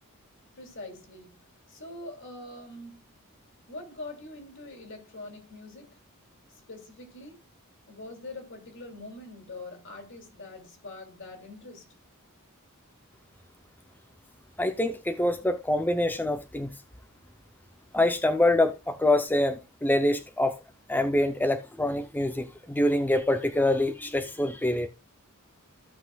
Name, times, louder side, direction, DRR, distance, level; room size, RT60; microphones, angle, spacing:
voice 1, 0.5-1.4 1.7-3.0 3.7-6.0 6.5-7.4 7.9-11.9, left 2 dB, 60° left, 2.9 m, -43 dB
voice 2, 14.6-16.7 17.9-20.6 20.9-24.9, left 1 dB, 10° left, 0.6 m, -25 dB
15.0 x 6.1 x 2.3 m
head